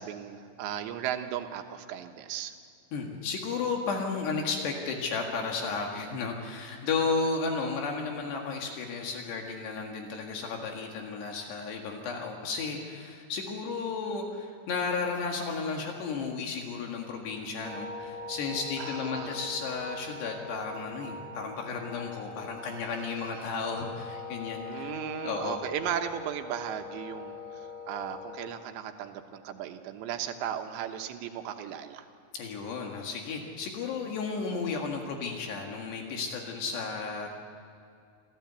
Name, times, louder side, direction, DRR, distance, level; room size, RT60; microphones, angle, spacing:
voice 1, 0.0-2.5 18.8-19.4 24.6-32.1, right 10 dB, 90° right, 6 dB, 3.4 m, -36 dB
voice 2, 2.9-24.9 25.2-25.6 32.3-37.3, left 4 dB, 75° left, 2 dB, 3.9 m, -33 dB
sound 1, 17.6-28.5, left 4 dB, 65° right, 5.1 m, -42 dB
27.0 x 15.5 x 8.1 m, 2.5 s
omnidirectional pair, 5.0 m